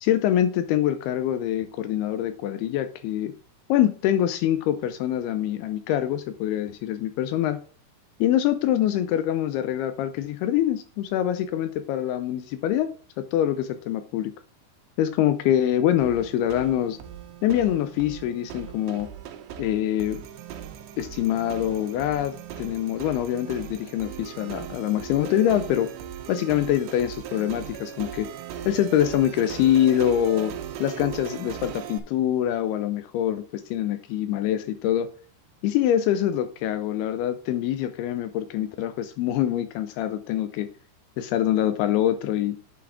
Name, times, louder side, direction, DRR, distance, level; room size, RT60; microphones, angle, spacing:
voice 1, 0.0-3.3 3.7-7.6 8.2-14.3 15.0-17.0 17.4-19.1 19.6-20.2 21.0-25.9 26.3-28.3 28.6-30.5 30.8-35.1 35.6-40.7 41.2-42.6, left 11 dB, 80° left, 2.4 m, -24 dB
sound 1, 16.0-32.0, right 10 dB, 85° right, 2.9 m, -38 dB
8.4 x 4.0 x 4.8 m
omnidirectional pair, 4.8 m